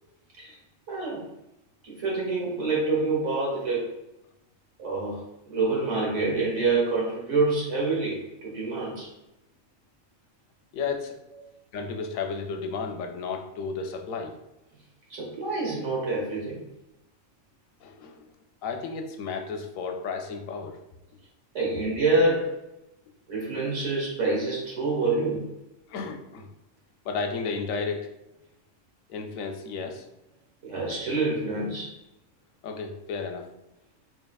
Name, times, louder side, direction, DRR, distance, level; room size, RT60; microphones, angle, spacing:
voice 1, 0.9-1.3 1.8-3.9 4.8-9.1 15.1-16.6 21.5-22.6 23.3-25.5 30.6-32.0, right 3 dB, 70° right, -3 dB, 1.5 m, -27 dB
voice 2, 10.7-11.2 11.7-14.3 17.8-18.3 18.6-20.8 25.9-26.5 27.0-28.1 29.1-30.0 32.6-33.5, left 5 dB, 85° left, 4 dB, 1.0 m, -33 dB
4.1 x 3.5 x 2.3 m, 0.87 s
omnidirectional pair, 1.4 m